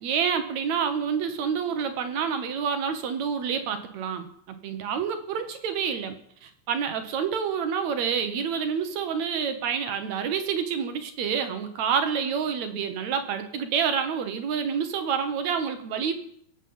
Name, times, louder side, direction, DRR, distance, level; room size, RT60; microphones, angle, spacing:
voice 1, 0.0-6.2 6.4-16.1, right 7 dB, 65° right, 8 dB, 2.2 m, -28 dB
22.0 x 8.2 x 5.5 m, 0.67 s
omnidirectional pair, 3.8 m